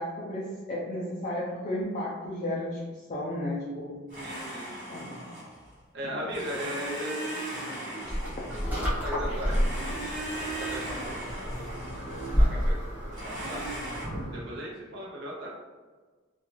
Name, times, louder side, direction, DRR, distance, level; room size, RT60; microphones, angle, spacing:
voice 1, 0.0-4.0 4.9-5.3 6.0-6.2 8.1-8.2 8.6-8.9, left 1 dB, 40° left, -5 dB, 0.4 m, -34 dB
Domestic sounds home sounds, 4.1-5.7 6.3-9.1 9.5-12.5 13.1-14.1, right 1 dB, 40° right, 1.0 m, -38 dB
voice 2, 4.2-4.8 5.9-8.3 8.8-10.0 10.4-11.8 12.3-13.6 14.3-15.5, equal, 60° right, -4 dB, 0.5 m, -38 dB
sound 1, 8.1-14.4, equal, 10° right, 0.6 m, -30 dB
2.4 x 2.4 x 2.9 m, 1.4 s
head